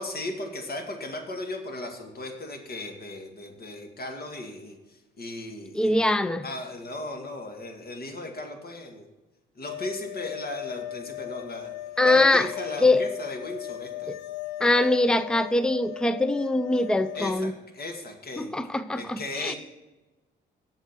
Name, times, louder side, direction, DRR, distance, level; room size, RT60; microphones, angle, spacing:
voice 1, 0.0-6.1 6.4-9.1 9.6-11.7 12.0-14.2 17.1-18.5 18.9-19.6, left 2 dB, 50° left, 3 dB, 2.1 m, -36 dB
voice 2, 5.8-6.4 12.0-12.5 12.8-13.0 14.6-17.5 18.4-19.5, left 2 dB, 5° left, 13 dB, 0.5 m, -22 dB
sound 1, 9.6-17.3, left 15 dB, 90° left, 0.6 m, -38 dB
8.0 x 6.7 x 6.7 m, 1.1 s
cardioid pair, 90°, 20 cm